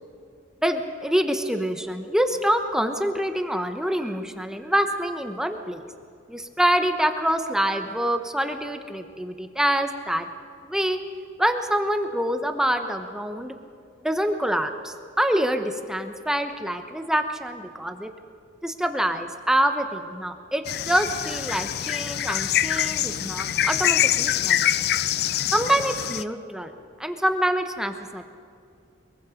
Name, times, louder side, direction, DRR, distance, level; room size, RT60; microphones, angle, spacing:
voice 1, 0.6-5.8 6.3-10.3 10.6-11.0 11.4-13.5 14.0-18.1 18.6-24.9 25.5-26.7 27.0-28.2, equal, 5° right, 7 dB, 0.9 m, -26 dB
sound 1, 20.7-26.2, left 11 dB, 55° left, 0.4 m, -25 dB
22.5 x 22.5 x 5.1 m, 2.4 s
head